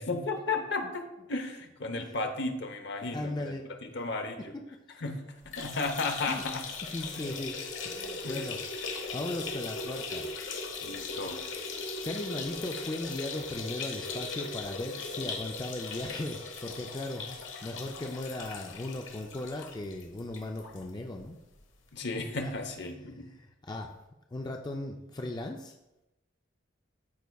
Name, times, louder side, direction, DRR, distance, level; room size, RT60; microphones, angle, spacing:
voice 1, 0.0-4.5 5.0-6.6 7.2-7.3 8.2-8.5 10.8-11.5 21.9-23.3, left 3 dB, 60° left, 5 dB, 0.9 m, -34 dB
voice 2, 3.0-3.7 4.5-4.6 6.3-6.4 6.9-7.5 7.8-10.3 12.0-21.4 22.2-22.5 22.9-23.9 24.3-25.7, left 1 dB, 20° left, 2 dB, 0.4 m, -38 dB
sound 1, 5.4-20.8 21.2-21.3 21.6-21.7 22.7-22.8, left 4 dB, 85° left, 1.1 m, -39 dB
13.0 x 4.6 x 2.3 m, 0.94 s
head